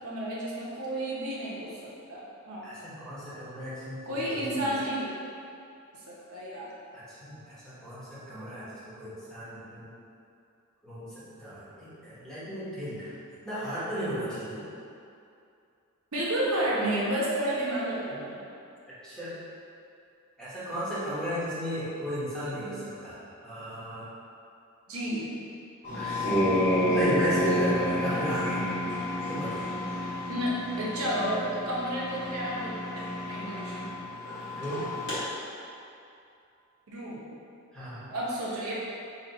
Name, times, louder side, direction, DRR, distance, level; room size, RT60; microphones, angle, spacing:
voice 1, 0.0-2.7 4.0-5.1 5.9-6.7 16.1-18.4 24.9-25.3 30.3-34.1 36.9-37.2 38.1-38.7, right 1 dB, 75° right, -6 dB, 0.7 m, -31 dB
voice 2, 2.6-4.7 6.9-9.9 10.8-13.2 13.4-14.6 18.1-18.2 19.0-19.3 20.4-23.1 23.4-24.1 25.9-26.4 26.9-28.8 29.3-29.7 34.5-34.9 37.7-38.1, equal, 5° left, -12 dB, 1.0 m, -35 dB
sound 1, 25.8-35.2, left 1 dB, 60° left, 1.4 m, -30 dB
2.9 x 2.8 x 4.0 m, 2.6 s
head